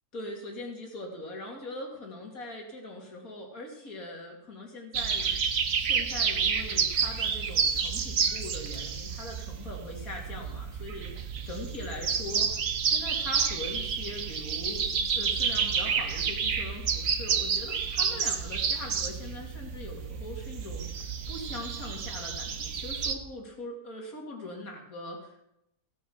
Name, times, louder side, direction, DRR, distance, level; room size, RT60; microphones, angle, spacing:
voice 1, 0.1-5.3 5.8-12.6 12.8-14.9 15.2-25.5, left 1 dB, 75° left, 0 dB, 3.1 m, -41 dB
sound 1, 4.9-23.1, right 6 dB, 70° right, 1.4 m, -30 dB
16.0 x 7.3 x 6.3 m, 0.80 s
omnidirectional pair, 1.5 m